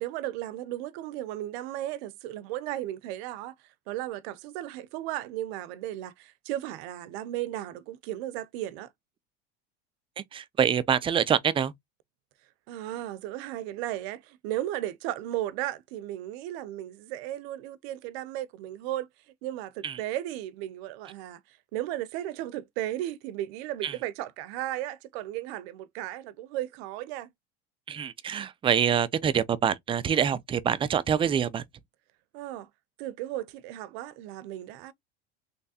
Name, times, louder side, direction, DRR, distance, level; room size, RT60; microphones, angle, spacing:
voice 1, 0.0-3.5 3.9-8.9 12.7-19.1 19.4-27.3 32.3-32.7 33.0-34.9, right 14 dB, 75° right, 0.6 m, -35 dB
voice 2, 10.3-11.7 19.8-20.0 23.8-23.9 27.9-31.6, right 8 dB, 20° right, 0.3 m, -25 dB
3.3 x 3.1 x 2.7 m
supercardioid pair, 115°, 32 cm